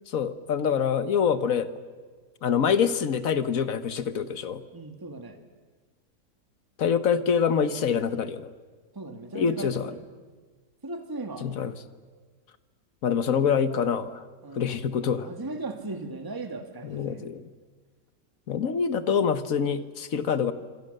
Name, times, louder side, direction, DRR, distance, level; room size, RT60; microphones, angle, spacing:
voice 1, 0.1-1.7 2.4-4.6 6.8-8.5 9.3-9.9 11.4-11.7 13.0-14.2 14.5-15.3 16.9-17.5 18.5-20.5, left 7 dB, 55° left, 12 dB, 1.4 m, -25 dB
voice 2, 4.7-5.4 8.9-10.0 10.8-11.5 14.4-14.8 15.2-17.3, right 2 dB, 15° right, 6 dB, 1.5 m, -37 dB
26.5 x 25.5 x 6.6 m, 1.4 s
omnidirectional pair, 1.8 m